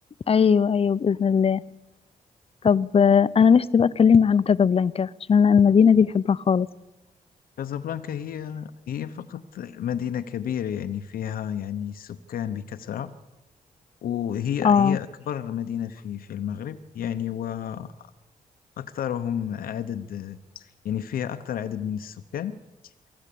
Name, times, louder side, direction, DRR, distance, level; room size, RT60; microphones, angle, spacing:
voice 1, 0.3-1.6 2.6-6.7 14.6-15.0, left 6 dB, 40° left, 18 dB, 0.7 m, -18 dB
voice 2, 7.6-13.1 14.0-18.1 18.8-22.6 22.8-22.9, left 9 dB, 90° left, 9 dB, 0.9 m, -31 dB
24.0 x 14.5 x 8.5 m, 1.0 s
cardioid pair, 90°, 15 cm